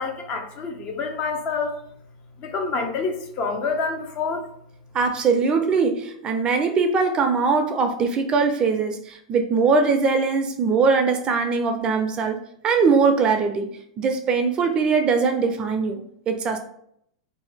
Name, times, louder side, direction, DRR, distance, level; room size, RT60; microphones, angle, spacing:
voice 1, 0.0-1.8 2.4-4.5, left 4 dB, 40° left, 4 dB, 0.7 m, -27 dB
voice 2, 4.9-12.4 12.6-13.7 14.0-16.6, right 4 dB, 30° right, 6 dB, 0.5 m, -21 dB
2.7 x 2.7 x 3.5 m, 0.71 s
hypercardioid pair, 105°, 3 cm